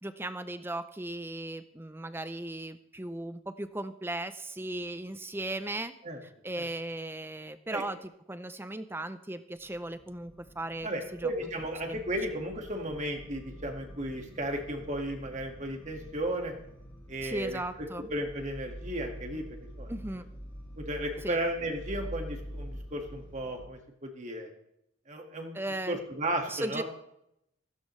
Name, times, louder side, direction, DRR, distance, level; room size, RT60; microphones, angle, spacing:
voice 1, 0.0-5.9 6.2-11.3 11.9-12.0 17.2-18.1 19.9-20.2 21.2-21.4 25.5-26.0 26.5-26.8, right 1 dB, 10° right, 11 dB, 0.6 m, -37 dB
sound 1, 9.6-23.6, equal, 20° left, 2.8 m, -46 dB
voice 2, 10.8-16.5 17.1-17.6 18.1-19.4 19.8-19.9 20.8-24.5 25.1-25.6 25.9-26.8, right 1 dB, 35° right, 3 dB, 2.0 m, -34 dB
16.0 x 15.5 x 3.3 m, 0.79 s
head